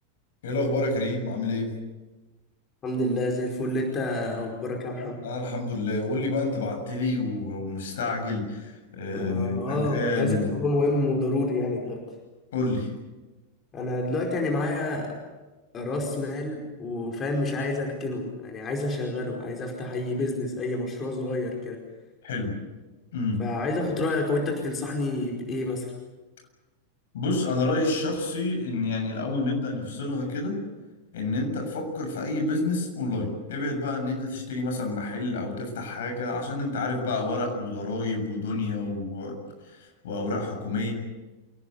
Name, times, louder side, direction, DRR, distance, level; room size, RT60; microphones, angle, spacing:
voice 1, 0.4-1.7 5.2-10.6 12.5-12.9 22.2-22.5 23.1-23.4 27.1-30.6 31.1-39.4 39.6-40.9, left 2 dB, 60° left, 3 dB, 7.1 m, -29 dB
voice 2, 2.8-5.2 9.1-12.0 13.7-15.2 15.7-21.8 23.4-25.9, left 2 dB, 25° left, 1 dB, 4.8 m, -28 dB
28.0 x 18.5 x 8.2 m, 1.2 s
figure-of-eight pair, 90°, 0 cm